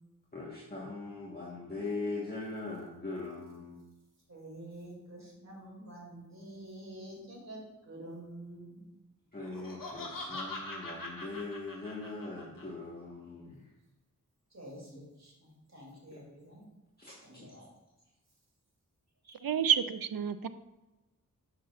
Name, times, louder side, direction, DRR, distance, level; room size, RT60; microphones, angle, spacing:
voice 1, 0.3-3.8 9.3-13.6 16.1-16.2 17.0-17.2, left 3 dB, 25° left, -5 dB, 1.4 m, -40 dB
voice 2, 4.3-7.6 7.9-8.8 14.5-16.6 17.2-17.7 19.2-19.4, right 1 dB, 50° right, -3 dB, 2.8 m, -48 dB
Laughter, 9.4-12.6, left 2 dB, 70° left, 1.6 m, -42 dB
voice 3, 19.4-20.5, right 8 dB, 80° right, 12 dB, 0.5 m, -29 dB
9.8 x 7.0 x 2.5 m, 1.1 s
wide cardioid pair, 65°, 35 cm